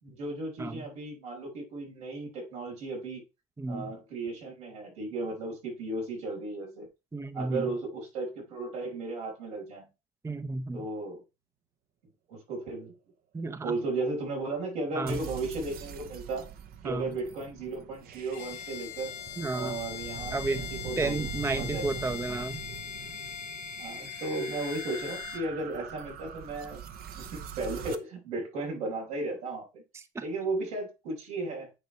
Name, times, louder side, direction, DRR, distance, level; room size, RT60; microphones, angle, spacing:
voice 1, 0.0-3.2 3.7-6.9 7.3-9.9 10.7-11.2 12.3-12.9 13.6-16.5 16.8-19.2 19.5-21.2 21.5-21.9 23.8-26.9 27.2-29.8 30.2-31.7, right 2 dB, 85° right, 5.7 m, -35 dB
voice 2, 3.6-3.9 7.1-7.7 10.2-10.8 13.3-13.7 14.9-15.2 16.8-17.1 19.4-19.8 20.3-20.7 21.0-22.6 29.9-30.2, right 3 dB, 15° right, 0.8 m, -32 dB
sound 1, 15.1-28.0, right 7 dB, 55° right, 1.0 m, -43 dB
Bowed string instrument, 18.3-25.5, left 8 dB, 70° left, 1.0 m, -40 dB
9.8 x 4.3 x 4.5 m
hypercardioid pair, 75°, 18 cm